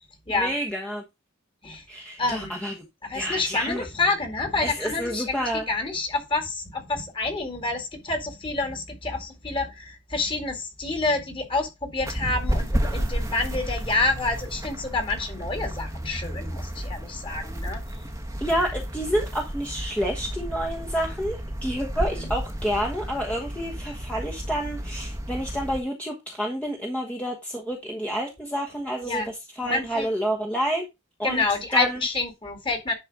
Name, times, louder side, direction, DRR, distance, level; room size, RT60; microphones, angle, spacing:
voice 1, 0.3-1.0 1.9-2.8 3.1-3.8 4.6-5.7 18.4-30.9 31.2-31.4 31.7-32.0, equal, 5° left, 1.2 m, -29 dB
voice 2, 2.2-2.5 3.0-17.8 22.2-22.3 29.0-29.3 29.6-30.1 31.2-32.9, left 3 dB, 25° left, 2.2 m, -28 dB
sound 1, 12.0-25.8, equal, 15° right, 1.1 m, -32 dB
10.5 x 4.3 x 4.8 m
head